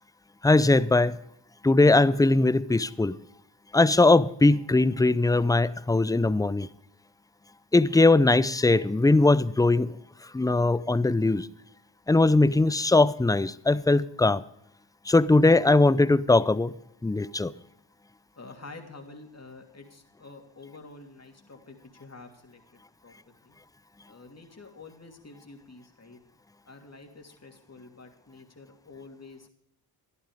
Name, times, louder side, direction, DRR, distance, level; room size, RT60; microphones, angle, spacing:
voice 1, 0.4-1.2 1.6-3.2 3.7-6.7 7.7-9.9 10.3-11.5 12.1-14.4 15.1-16.7 17.0-17.5, left 2 dB, 10° left, 0.5 m, -20 dB
voice 2, 18.4-22.6 23.0-23.6 24.1-26.2 26.6-29.5, left 3 dB, 35° left, 2.9 m, -48 dB
13.0 x 11.0 x 5.1 m
cardioid pair, 50°, 47 cm